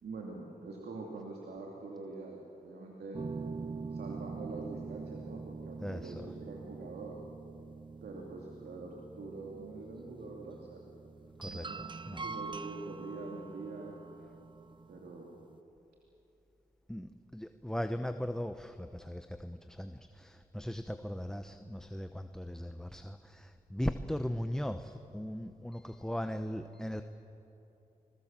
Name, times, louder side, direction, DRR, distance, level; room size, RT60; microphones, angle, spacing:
voice 1, 0.0-3.2 3.9-7.2 8.0-10.8 11.4-11.7 12.1-14.0 14.9-15.4, right 3 dB, 85° right, -1 dB, 2.7 m, -44 dB
sound 1, 3.1-15.6, right 4 dB, 30° right, 0.6 m, -44 dB
voice 2, 5.8-6.3 11.4-11.6 12.1-12.2 16.9-27.0, equal, 5° left, 8 dB, 0.9 m, -38 dB
26.5 x 21.0 x 7.5 m, 2.9 s
cardioid pair, 65°, 16 cm